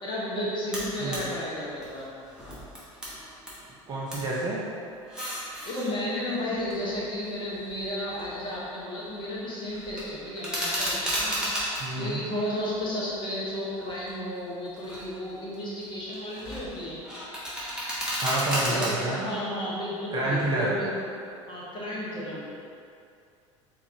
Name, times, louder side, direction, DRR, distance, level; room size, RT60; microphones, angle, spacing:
voice 1, 0.0-2.1 5.7-11.4 11.9-17.0 18.7-20.9 21.5-22.5, left 1 dB, 30° left, -7 dB, 0.9 m, -33 dB
sound 1, 0.7-1.2 1.6-3.6 3.9-4.3 4.9-5.9 6.6-8.7 9.0-9.3 9.7-11.8 12.3-13.3 13.8-14.1 14.7-15.1 15.5-18.9, equal, 5° right, 0.9 m, -34 dB
voice 2, 1.0-1.3 3.9-4.6 11.8-12.2 18.2-19.2 20.1-20.7, right 2 dB, 25° right, -6 dB, 0.5 m, -28 dB
3.7 x 2.4 x 2.7 m, 2.4 s
figure-of-eight pair, 70°, 16 cm